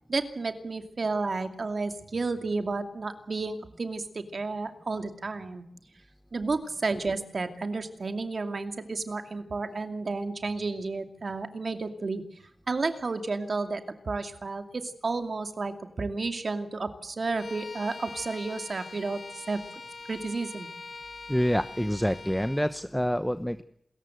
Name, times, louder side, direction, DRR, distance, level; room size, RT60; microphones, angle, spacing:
voice 1, 0.1-5.6 6.3-12.2 12.7-19.6 20.1-20.7, right 3 dB, 65° right, 8 dB, 2.5 m, -32 dB
Bowed string instrument, 17.3-22.7, left 3 dB, 65° left, 1.3 m, -43 dB
voice 2, 21.3-23.6, equal, 5° left, 11 dB, 0.9 m, -27 dB
28.0 x 14.5 x 7.8 m, 0.71 s
wide cardioid pair, 75°, 0 cm